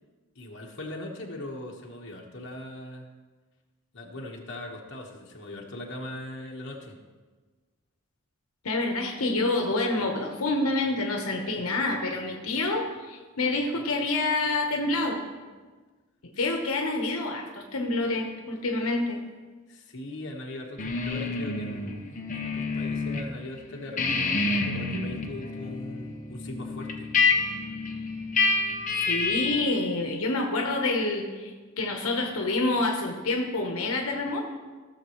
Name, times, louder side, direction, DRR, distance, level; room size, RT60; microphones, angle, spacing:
voice 1, 0.3-3.1 3.9-7.0 19.7-27.1, left 1 dB, 55° left, -1 dB, 1.3 m, -40 dB
voice 2, 8.6-15.2 16.2-19.2 29.0-34.4, left 2 dB, 90° left, 2 dB, 1.1 m, -27 dB
sound 1, 20.8-23.3 23.6-29.7, left 4 dB, 40° left, 0.9 m, -28 dB
16.0 x 6.8 x 3.1 m, 1.4 s
head